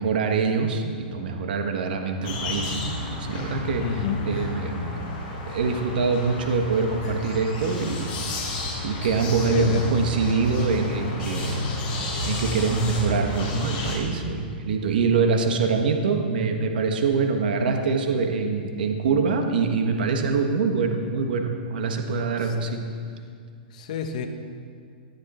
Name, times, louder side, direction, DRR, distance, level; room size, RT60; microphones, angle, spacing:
voice 1, 0.0-5.0 5.5-8.5 8.8-11.6 11.9-22.8, right 4 dB, 65° right, 4 dB, 1.5 m, -25 dB
sound 1, 2.2-14.0, left 2 dB, 30° left, 4.0 m, -31 dB
voice 2, 3.8-4.3 9.4-9.9 22.4-22.5 23.7-24.3, left 7 dB, 45° left, 5 dB, 1.1 m, -30 dB
18.5 x 11.5 x 4.4 m, 2.2 s
hypercardioid pair, 170°, 5 cm